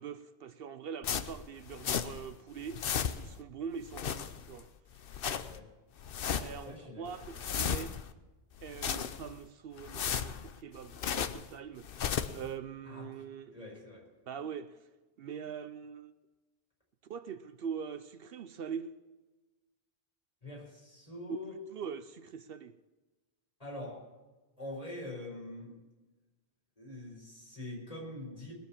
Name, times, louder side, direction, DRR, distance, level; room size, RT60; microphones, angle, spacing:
voice 1, 0.0-4.7 6.4-8.0 8.6-13.5 14.3-14.8 15.2-16.1 17.1-19.0 21.7-22.8, right 7 dB, 70° right, 0.8 m, -43 dB
sound 1, 1.0-2.3 2.6-3.4 3.8-4.6 5.0-5.6 6.0-6.7 7.1-8.1 8.6-9.4 9.8-11.5 11.8-12.5, left 8 dB, 65° left, 0.9 m, -35 dB
voice 2, 6.6-7.0 12.8-13.2 13.5-14.1 20.4-21.6 23.6-24.1 24.6-25.8 26.8-28.5, left 2 dB, 35° left, 5.1 m, -44 dB
20.0 x 7.4 x 7.2 m
omnidirectional pair, 1.1 m